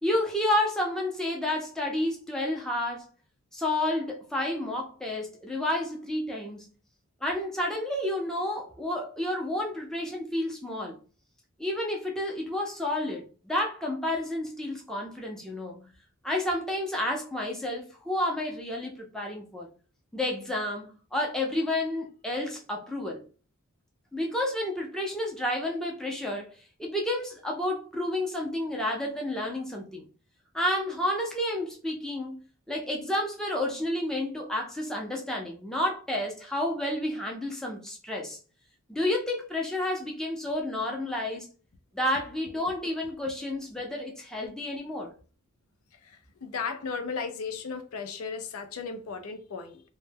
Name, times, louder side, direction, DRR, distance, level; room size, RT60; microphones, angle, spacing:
voice 1, 0.0-3.1 3.5-6.7 7.2-11.0 11.6-15.9 16.2-19.7 20.1-23.2 24.1-26.5 26.8-30.1 30.5-32.4 32.7-38.4 38.9-41.5 41.9-45.1, left 1 dB, 5° left, 0.5 m, -30 dB
voice 2, 45.9-49.8, left 5 dB, 85° left, 0.4 m, -35 dB
2.1 x 2.1 x 3.3 m
head